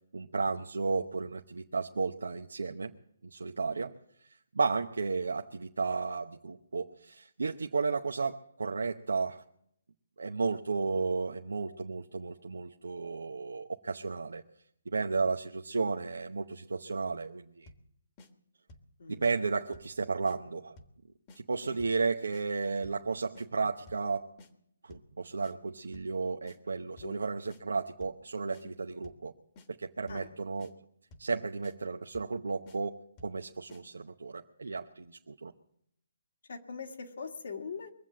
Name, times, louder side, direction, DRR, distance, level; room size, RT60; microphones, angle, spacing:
voice 1, 0.1-2.9 3.3-3.9 4.5-9.4 10.2-14.4 14.9-17.7 19.1-20.8 21.3-24.3 24.8-29.3 29.7-30.7 31.2-35.5, right 4 dB, 85° right, 3 dB, 0.8 m, -33 dB
sound 1, 17.7-17.9 18.2-18.3 18.7-18.9 19.2-19.3 19.7-20.0 20.2-20.4 20.8-21.0 21.3-21.4 21.8-22.0 22.3-22.4 22.8-23.1 23.3-23.5 23.9-24.1 24.4-24.5 24.9-25.1 25.4-25.5 25.9-26.2 26.5-26.6 27.0-27.2 27.5-27.6 28.0-28.2 28.5-28.6 29.0-29.3 29.6-29.7 30.1-30.3 30.6-30.7 31.1-31.3 31.6-31.8 32.1-32.4 32.7-32.8 33.2-33.4 33.7-33.8, left 2 dB, 30° left, 1.5 m, -54 dB
voice 2, 19.0-19.3 21.6-21.8 27.0-27.2 28.6-28.7 30.1-30.3 36.5-37.9, left 5 dB, 70° left, 3 dB, 2.2 m, -42 dB
22.5 x 7.6 x 7.4 m, 0.72 s
hypercardioid pair, 150°, 0 cm